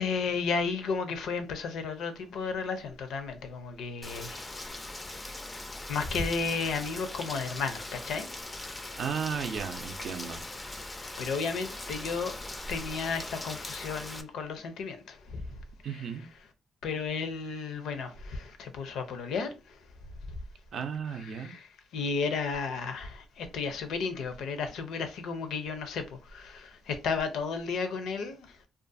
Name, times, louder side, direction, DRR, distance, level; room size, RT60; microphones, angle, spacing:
voice 1, 0.0-4.8 5.1-5.3 5.9-8.3 8.5-8.8 11.2-12.4 12.7-15.4 15.8-16.1 16.8-19.8 21.1-28.6, left 5 dB, 80° left, 0.5 m, -33 dB
Rain, 4.0-14.2, left 2 dB, 15° left, 0.4 m, -40 dB
voice 2, 9.0-10.4 15.8-16.2 20.7-21.5, right 7 dB, 65° right, 0.4 m, -34 dB
2.4 x 2.3 x 2.5 m
cardioid pair, 90°, 0 cm